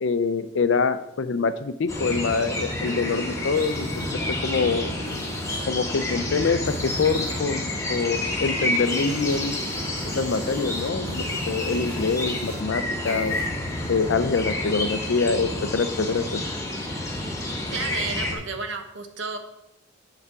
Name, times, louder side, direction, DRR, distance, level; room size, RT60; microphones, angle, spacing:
voice 1, 0.0-4.9 5.7-9.6 10.1-13.4 13.9-16.4, left 4 dB, 60° left, 12 dB, 0.5 m, -25 dB
sound 1, 1.9-18.3, left 1 dB, 15° left, 1.3 m, -29 dB
sound 2, 2.5-14.8, right 3 dB, 90° right, 0.8 m, -42 dB
voice 2, 17.7-19.4, right 4 dB, 60° right, 6 dB, 0.9 m, -32 dB
8.1 x 4.9 x 4.7 m, 0.88 s
head